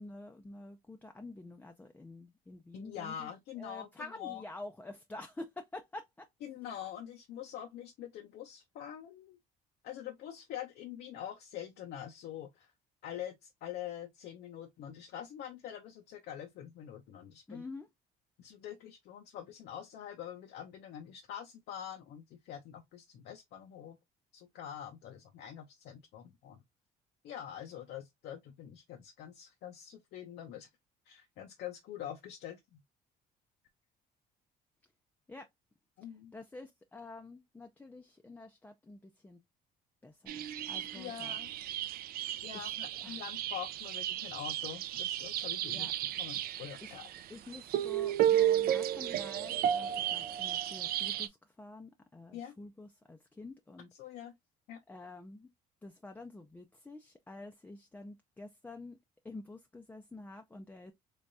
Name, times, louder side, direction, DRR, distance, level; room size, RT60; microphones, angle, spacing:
voice 1, 0.0-3.3 3.6-6.3 17.5-17.9 35.3-35.5 36.3-39.4 40.0-41.3 42.5-42.7 43.0-43.2 45.7-45.9 46.8-47.0 47.3-53.9 54.9-55.5 55.8-59.0 59.2-60.9, left 2 dB, 10° left, 0.4 m, -48 dB
voice 2, 2.7-4.4 6.4-9.4 9.8-12.7 13.0-17.6 18.4-24.0 24.3-26.6 27.2-30.7 31.1-32.8 36.0-36.3 40.9-41.5 42.4-45.9 46.2-47.1 52.3-52.5 53.9-54.3 54.7-54.8, left 10 dB, 75° left, 0.6 m, -45 dB
sound 1, 40.3-51.3, right 11 dB, 60° right, 0.4 m, -33 dB
3.4 x 3.3 x 2.6 m
cardioid pair, 110°, 17 cm